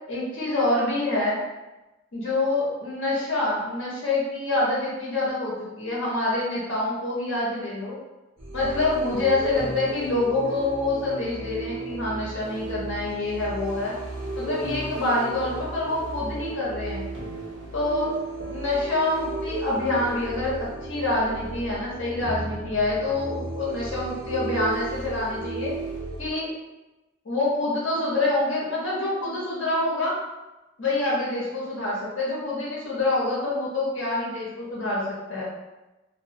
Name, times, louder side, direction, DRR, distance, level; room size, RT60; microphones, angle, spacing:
voice 1, 0.1-1.4 2.1-8.0 8.5-13.9 14.4-17.0 17.7-18.1 18.5-25.7 26.2-26.5 27.2-30.1 30.8-35.0 35.3-35.5, left 2 dB, 85° left, -6 dB, 0.9 m, -26 dB
sound 1, 8.4-26.3, right 2 dB, 75° right, 0.7 m, -34 dB
2.4 x 2.1 x 2.7 m, 1.0 s
head